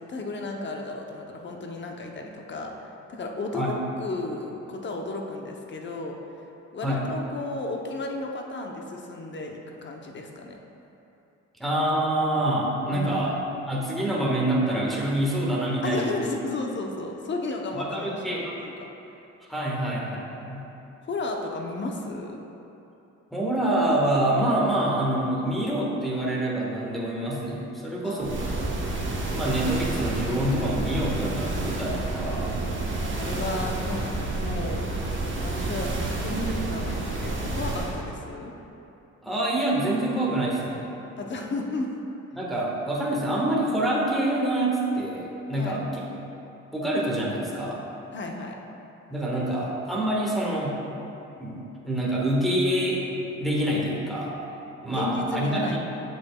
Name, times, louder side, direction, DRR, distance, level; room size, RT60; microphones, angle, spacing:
voice 1, 0.0-6.2 6.7-10.6 12.9-13.3 15.8-18.9 21.0-22.4 28.0-28.7 33.1-34.9 35.4-35.9 36.2-38.5 41.2-41.9 45.6-45.8 48.1-48.5 54.9-55.8, left 2 dB, 40° left, 2 dB, 0.8 m, -33 dB
voice 2, 11.6-13.3 13.7-16.1 17.7-18.5 19.5-20.6 23.3-28.4 29.3-32.4 39.2-40.8 42.3-45.8 46.1-46.2 46.7-47.8 49.1-50.8 51.4-54.3 54.8-55.8, right 1 dB, ahead, -6 dB, 1.4 m, -26 dB
sound 1, 28.2-38.0, right 2 dB, 40° right, 1.1 m, -29 dB
7.7 x 6.8 x 2.3 m, 2.9 s
cardioid pair, 90°, 30 cm